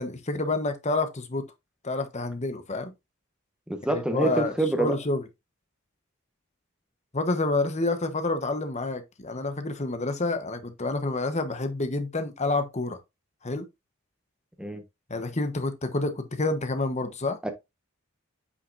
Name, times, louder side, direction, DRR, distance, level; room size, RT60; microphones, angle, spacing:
voice 1, 0.0-1.4 1.8-2.9 3.9-4.5 4.8-5.2 7.1-13.0 13.4-13.7 15.1-17.4, left 2 dB, 35° left, 1.1 m, -28 dB
voice 2, 3.7-5.0 14.6-14.8 17.4-17.5, right 1 dB, 5° right, 1.2 m, -26 dB
8.3 x 5.8 x 2.6 m
head